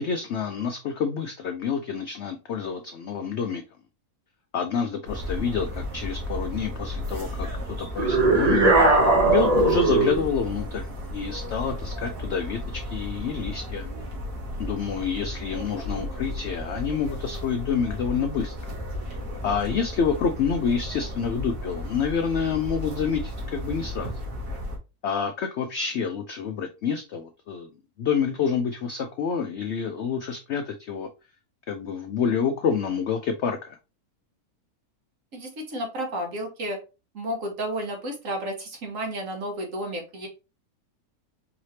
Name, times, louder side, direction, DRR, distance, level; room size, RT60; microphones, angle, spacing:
voice 1, 0.0-3.6 4.5-7.5 7.8-8.6 9.2-13.8 14.6-18.5 19.4-24.2 25.0-27.7 28.0-31.1 31.7-33.8, left 6 dB, 75° left, 0.6 m, -28 dB
sound 1, 5.0-24.8, left 1 dB, 85° right, 2.1 m, -34 dB
sound 2, 8.0-10.3, right 2 dB, 35° right, 0.7 m, -19 dB
voice 2, 35.3-36.8 37.1-40.3, right 1 dB, 60° right, 1.5 m, -32 dB
4.8 x 3.2 x 2.7 m
omnidirectional pair, 1.7 m